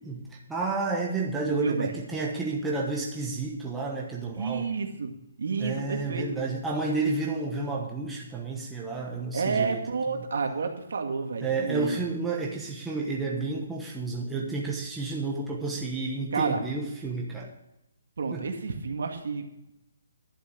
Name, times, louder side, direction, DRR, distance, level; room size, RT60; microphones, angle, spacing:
voice 1, 0.0-4.7 5.6-9.8 10.1-10.3 11.4-17.5 18.3-18.5, right 3 dB, 5° right, -3 dB, 1.1 m, -31 dB
voice 2, 1.5-1.9 4.4-5.1 5.4-6.4 9.3-12.0 16.3-16.6 18.2-19.4, right 5 dB, 65° right, 4 dB, 2.0 m, -30 dB
11.5 x 6.6 x 7.9 m, 0.88 s
hypercardioid pair, 170°, 0 cm